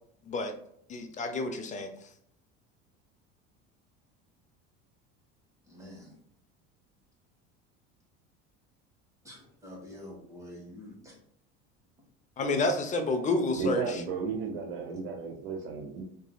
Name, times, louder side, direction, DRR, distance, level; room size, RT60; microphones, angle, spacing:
voice 1, 0.9-1.9 12.4-13.8, left 2 dB, 25° left, 6 dB, 0.5 m, -29 dB
voice 2, 5.7-6.1 9.2-11.1, left 1 dB, 10° right, -4 dB, 1.4 m, -47 dB
voice 3, 13.5-16.0, right 5 dB, 80° right, 0 dB, 0.7 m, -34 dB
2.9 x 2.7 x 2.2 m, 0.70 s
supercardioid pair, 100°, 31 cm